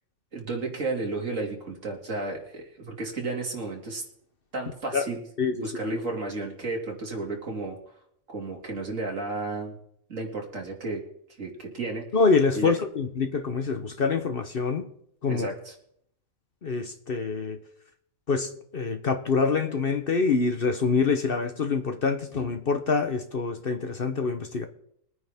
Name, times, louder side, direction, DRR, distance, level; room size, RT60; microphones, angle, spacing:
voice 1, 0.3-4.0 4.5-7.8 8.3-9.8 10.1-11.0 11.4-12.0 12.5-12.7 15.3-15.7, right 2 dB, 70° right, 0 dB, 2.8 m, -33 dB
voice 2, 12.1-14.9 15.2-15.5 16.6-17.6 18.3-24.7, left 4 dB, 50° left, 7 dB, 1.0 m, -25 dB
22.0 x 9.3 x 3.5 m, 0.70 s
omnidirectional pair, 1.4 m